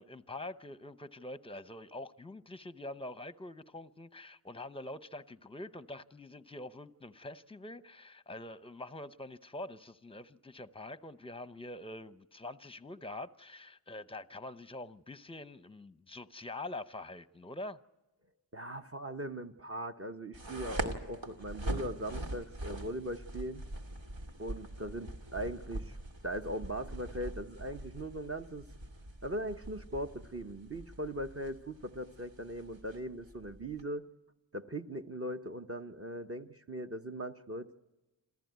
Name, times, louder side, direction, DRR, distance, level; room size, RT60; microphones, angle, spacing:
voice 1, 0.0-17.8, left 2 dB, 10° left, 0.7 m, -45 dB
voice 2, 18.5-23.7 24.4-26.0 26.2-28.7 29.2-34.1 34.5-37.8, right 1 dB, 30° right, 0.9 m, -40 dB
sound 1, 20.3-33.8, right 1 dB, 75° right, 2.4 m, -43 dB
27.5 x 15.0 x 9.3 m
wide cardioid pair, 70°, 45 cm